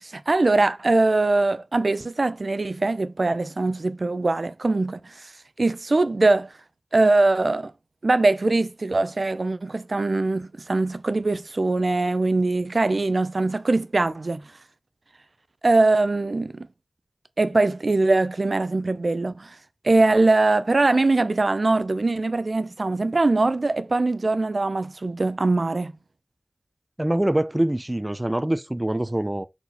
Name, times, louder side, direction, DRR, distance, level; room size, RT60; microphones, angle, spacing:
voice 1, 0.0-5.3 5.6-6.5 6.9-7.7 8.0-14.4 15.6-16.7 17.4-19.6 19.8-25.9, right 2 dB, 65° right, 0.6 m, -22 dB
voice 2, 27.0-29.4, right 1 dB, 25° right, 0.6 m, -24 dB
4.3 x 4.2 x 5.7 m
wide cardioid pair, 40°, 0 cm